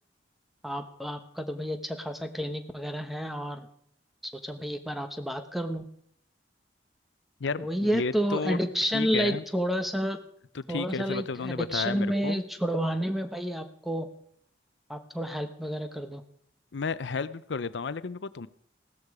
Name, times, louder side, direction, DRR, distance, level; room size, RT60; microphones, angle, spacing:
voice 1, 0.6-3.7 4.2-5.9 7.6-10.2 10.7-14.1 14.9-16.2, equal, ahead, 7 dB, 1.0 m, -30 dB
voice 2, 7.4-8.6 8.9-9.4 10.5-12.4 16.7-18.5, left 4 dB, 80° left, 15 dB, 0.6 m, -32 dB
16.5 x 13.5 x 4.8 m, 0.67 s
head